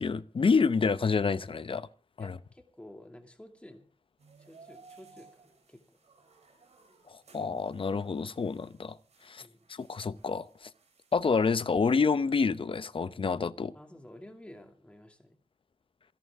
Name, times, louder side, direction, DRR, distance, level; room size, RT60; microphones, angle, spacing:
voice 1, 0.0-1.9 2.2-2.4 7.1-9.0 9.3-9.4 9.7-10.7 11.1-13.7, left 5 dB, 55° left, 0.8 m, -28 dB
voice 2, 2.2-3.9 4.4-6.0 9.4-9.7 13.7-15.4, left 1 dB, 10° left, 2.6 m, -51 dB
sound 1, 4.2-11.6, right 4 dB, 90° right, 6.4 m, -59 dB
27.5 x 11.0 x 3.7 m
wide cardioid pair, 105°, 11 cm